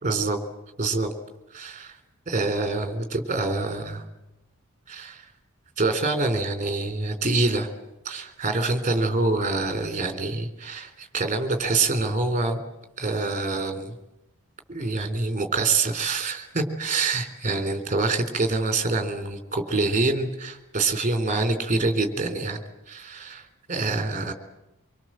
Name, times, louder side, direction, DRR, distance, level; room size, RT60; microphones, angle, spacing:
voice 1, 0.0-0.4 0.8-1.1 1.5-2.0 2.3-4.0 4.9-5.3 5.8-7.7 8.1-12.6 13.0-13.9 14.7-22.6 22.9-24.3, right 3 dB, 35° right, 7 dB, 3.7 m, -26 dB
25.5 x 24.5 x 7.6 m, 0.97 s
head